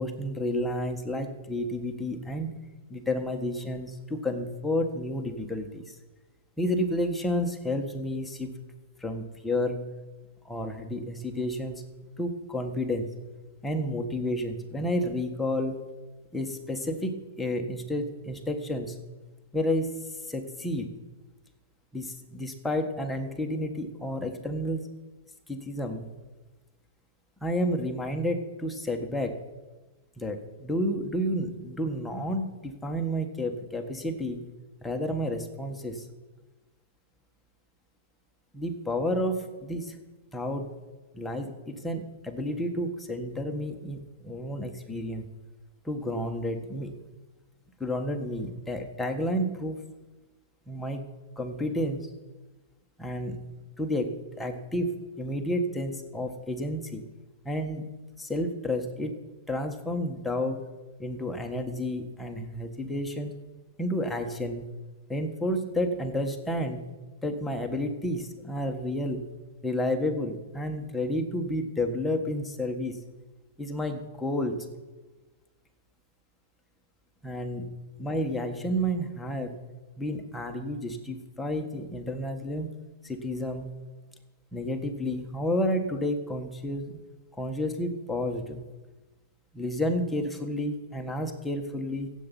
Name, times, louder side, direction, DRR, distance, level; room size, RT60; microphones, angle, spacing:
voice 1, 0.0-2.5 2.9-5.9 6.6-8.6 9.0-9.8 10.4-11.8 12.2-13.1 13.6-15.8 16.3-19.0 19.5-19.9 20.3-20.9 21.9-24.9 25.5-26.1 27.4-29.4 30.2-34.4 34.8-36.0 38.5-40.0 40.3-40.7 41.1-45.3 45.8-46.9 47.8-49.8 50.7-51.0 51.4-52.1 53.0-53.4 53.8-54.9 55.2-57.0 57.4-57.9 58.2-59.1 59.5-60.7 61.0-63.3 63.8-64.7 65.1-66.8 67.2-69.3 69.6-73.0 73.6-74.7 77.2-77.7 78.0-79.5 80.0-82.7 83.0-83.7 84.5-87.0 87.4-88.6 89.5-92.1, left 1 dB, 5° left, 3 dB, 1.5 m, -31 dB
15.0 x 8.3 x 9.2 m, 1.2 s
hypercardioid pair, 155°, 0 cm